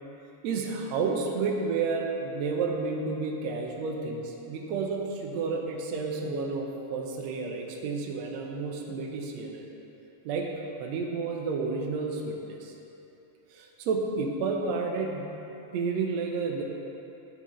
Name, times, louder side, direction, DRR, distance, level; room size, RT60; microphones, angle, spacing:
voice 1, 0.4-9.7 10.3-10.5 10.8-12.7 13.5-15.3 15.7-16.6, right 4 dB, 70° right, 1 dB, 1.9 m, -31 dB
9.5 x 9.4 x 3.2 m, 2.9 s
omnidirectional pair, 3.5 m